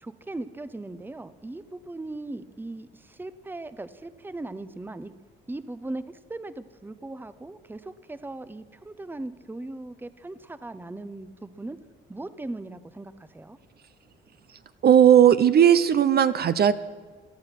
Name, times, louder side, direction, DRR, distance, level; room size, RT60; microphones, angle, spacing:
voice 1, 0.0-5.1 5.5-11.8 12.1-13.6, right 2 dB, 10° right, 13 dB, 0.8 m, -38 dB
voice 2, 14.8-16.7, right 9 dB, 55° right, 13 dB, 0.7 m, -17 dB
18.0 x 13.0 x 6.0 m, 1.4 s
cardioid pair, 90°, 20 cm